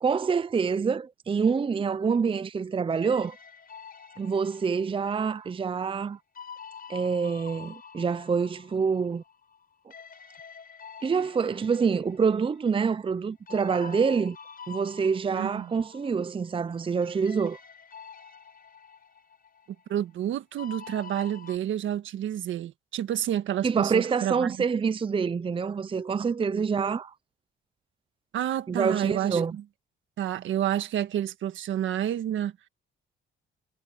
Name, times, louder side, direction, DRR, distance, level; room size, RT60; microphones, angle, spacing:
voice 1, 0.0-3.4 4.2-6.2 6.9-9.2 11.0-14.4 14.7-17.6 23.6-27.1 28.7-29.5, right 5 dB, 25° right, 0.6 m, -26 dB
sound 1, 2.9-9.7 9.9-16.8 17.0-21.6, left 6 dB, 45° left, 5.9 m, -47 dB
voice 2, 15.3-15.7 19.9-24.6 26.5-26.6 28.3-29.6 30.2-32.7, right 11 dB, 75° right, 1.7 m, -29 dB
cardioid pair, 90°, 20 cm